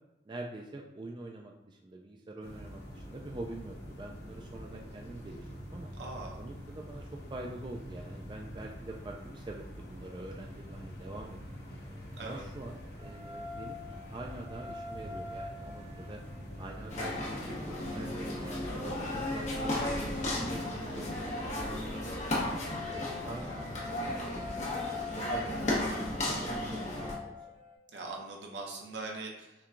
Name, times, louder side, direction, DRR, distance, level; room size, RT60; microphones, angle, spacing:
voice 1, 0.3-5.9 6.4-11.6 12.2-13.8 14.1-16.2 16.6-22.5 22.9-23.7 24.1-27.4, right 2 dB, 25° right, 0 dB, 0.3 m, -45 dB
sound 1, 2.4-21.3, equal, 70° left, 1.4 m, -46 dB
voice 2, 6.0-6.4 12.2-12.4 20.3-20.6 27.9-29.5, right 3 dB, 75° right, 0 dB, 0.8 m, -41 dB
sound 2, 11.5-19.8 21.0-27.7, left 4 dB, 40° right, 1.1 m, -47 dB
sound 3, 16.9-27.1, left 1 dB, 40° left, 1.0 m, -34 dB
5.7 x 2.3 x 3.7 m, 0.93 s
head